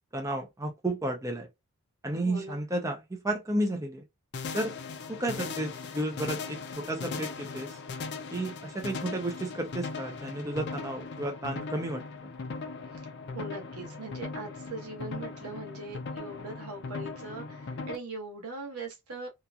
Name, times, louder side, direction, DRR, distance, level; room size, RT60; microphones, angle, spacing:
voice 1, 0.1-1.5 2.0-4.0 4.5-4.8 5.1-7.8 8.3-12.0, right 1 dB, 15° right, 0.5 m, -32 dB
voice 2, 2.1-2.6 12.9-19.3, right 3 dB, 85° right, 1.1 m, -41 dB
sound 1, 4.3-18.0, left 4 dB, 50° left, 0.4 m, -39 dB
2.9 x 2.5 x 2.3 m
head